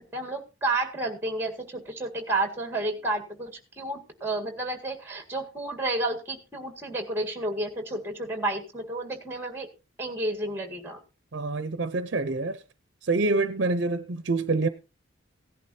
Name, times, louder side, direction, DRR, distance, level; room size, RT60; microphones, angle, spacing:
voice 1, 0.0-9.7 10.0-11.0, right 2 dB, 10° right, 1.9 m, -31 dB
voice 2, 11.3-12.6 13.0-14.7, right 3 dB, 60° right, 0.6 m, -26 dB
17.0 x 11.0 x 2.8 m
head